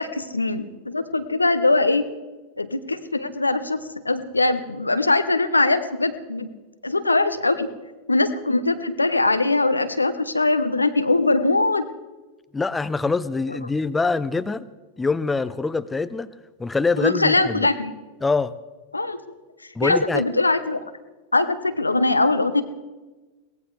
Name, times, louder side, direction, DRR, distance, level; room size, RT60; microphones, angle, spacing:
voice 1, 0.0-2.0 2.6-6.5 6.8-7.7 8.1-11.9 17.0-17.9 18.9-19.2 19.8-20.8 21.3-22.6, left 2 dB, 80° left, 11 dB, 0.9 m, -21 dB
voice 2, 12.5-14.7 15.0-16.3 16.6-17.7 18.2-18.5 19.8-20.2, left 3 dB, 10° left, 14 dB, 0.6 m, -24 dB
22.5 x 18.0 x 3.3 m, 1.2 s
figure-of-eight pair, 90°, 0 cm